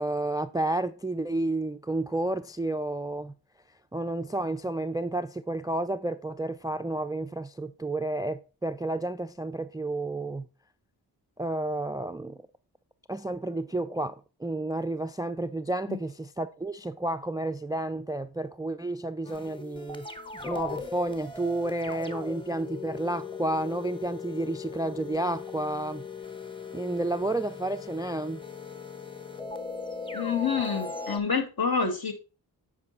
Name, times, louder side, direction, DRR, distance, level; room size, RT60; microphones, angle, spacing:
voice 1, 0.0-3.3 3.9-10.5 11.4-12.4 13.1-20.1 20.4-26.0 26.7-28.4, right 2 dB, 10° right, 0.3 m, -31 dB
sound 1, 19.2-31.2, left 4 dB, 10° left, 1.0 m, -39 dB
voice 2, 30.1-32.1, left 5 dB, 55° left, 2.0 m, -27 dB
8.6 x 4.7 x 4.1 m
cardioid pair, 50°, 43 cm